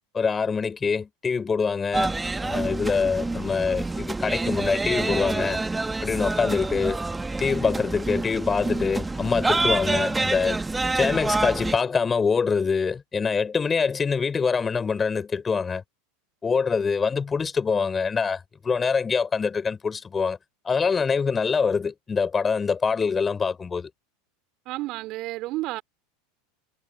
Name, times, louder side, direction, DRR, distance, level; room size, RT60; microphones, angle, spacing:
voice 1, 0.1-2.1 2.4-5.6 6.0-7.0 7.4-10.6 10.9-15.8 16.4-20.4 20.6-23.9, left 5 dB, 20° left, 5.7 m, -24 dB
sound 1, 1.9-11.8, right 3 dB, 10° right, 1.6 m, -27 dB
voice 2, 24.7-25.8, right 18 dB, 45° right, 3.1 m, -31 dB
figure-of-eight pair, 80°, 0 cm